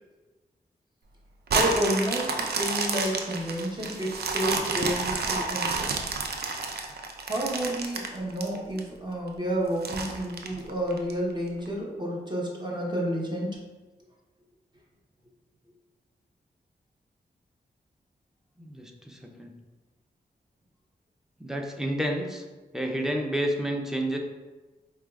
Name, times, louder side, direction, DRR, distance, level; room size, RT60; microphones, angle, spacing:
voice 1, 1.5-5.9 7.2-13.6, equal, 25° right, -3 dB, 0.9 m, -30 dB
sound 1, 1.5-8.8 9.3-9.4 9.8-11.1 11.7-11.8, right 4 dB, 70° right, 0.4 m, -29 dB
voice 2, 18.6-19.5 21.4-22.4 22.7-24.2, right 1 dB, 5° right, 2 dB, 0.5 m, -30 dB
4.6 x 2.3 x 2.3 m, 1.2 s
cardioid pair, 60°, 17 cm